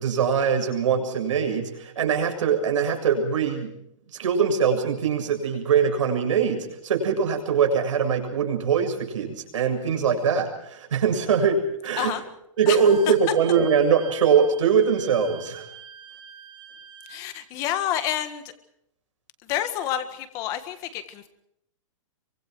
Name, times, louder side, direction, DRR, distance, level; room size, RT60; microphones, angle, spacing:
voice 1, 0.0-3.7 4.2-12.1 12.6-15.7, right 6 dB, 65° right, 3 dB, 7.2 m, -22 dB
Wind instrument woodwind instrument, 12.6-17.2, right 8 dB, 40° right, 5.0 m, -45 dB
voice 2, 17.1-18.4 19.5-21.3, left 11 dB, 20° left, 10 dB, 1.6 m, -28 dB
26.5 x 24.5 x 4.7 m, 0.76 s
hypercardioid pair, 175°, 17 cm